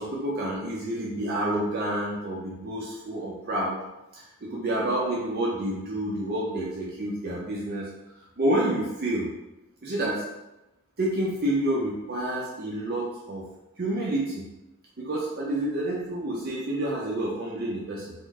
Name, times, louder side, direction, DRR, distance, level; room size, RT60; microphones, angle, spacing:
voice 1, 0.0-3.8 4.1-7.9 8.4-9.3 9.8-10.2 11.0-13.5 13.8-14.5 15.0-18.1, right 1 dB, 50° right, -4 dB, 0.6 m, -29 dB
3.6 x 2.1 x 3.5 m, 0.95 s
head